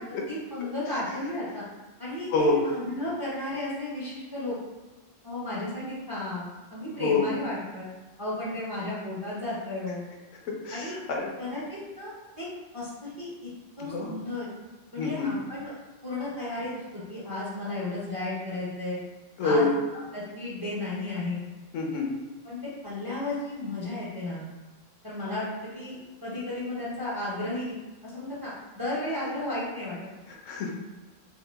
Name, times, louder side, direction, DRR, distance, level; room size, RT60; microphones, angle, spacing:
voice 1, 0.0-1.6 2.0-4.6 5.2-7.9 8.2-10.0 10.7-11.0 11.4-12.5 12.7-13.5 13.8-14.5 14.9-15.7 16.0-16.8 17.1-19.0 19.4-19.7 20.1-21.4 22.4-24.4 25.0-27.8 28.0-30.0, left 2 dB, 20° right, -8 dB, 0.6 m, -33 dB
voice 2, 2.3-2.6 7.0-7.3 10.5-11.3 13.9-14.1 15.0-15.3 19.4-19.7 21.7-22.1 30.5-30.7, left 3 dB, 75° left, 0 dB, 0.9 m, -26 dB
2.8 x 2.3 x 3.4 m, 1.2 s
omnidirectional pair, 1.3 m